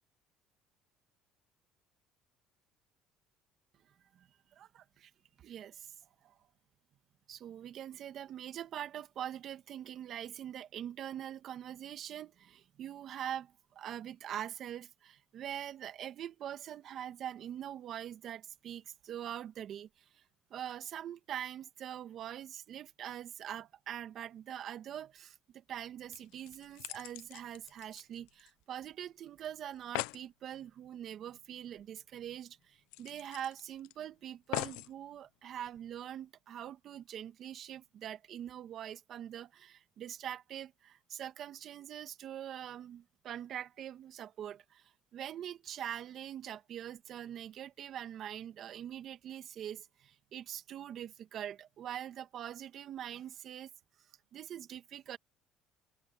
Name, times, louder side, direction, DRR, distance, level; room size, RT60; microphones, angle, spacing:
voice 1, 4.6-5.1 5.4-5.9 6.2-6.3 7.3-19.9 20.1-20.2 20.5-53.7 54.3-55.2, right 10 dB, 55° right, 1.9 m, -43 dB
sound 1, 25.8-25.9 26.1-28.8 29.0-29.1 29.4-29.5 29.7-30.3 31.8-31.9 32.2-32.3 32.9-33.9 34.5-34.9 35.7-35.8, left 23 dB, 85° left, 0.6 m, -42 dB
supercardioid pair, 105°, 0 cm